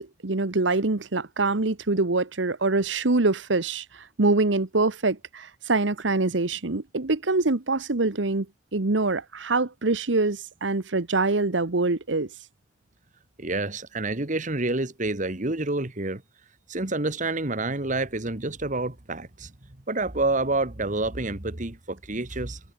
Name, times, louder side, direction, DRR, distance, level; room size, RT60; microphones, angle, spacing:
voice 1, 0.0-8.5 8.7-12.3, right 3 dB, 80° right, 1.2 m, -24 dB
voice 2, 13.4-16.2 16.7-19.5 19.9-22.6, right 2 dB, 45° right, 1.8 m, -28 dB
head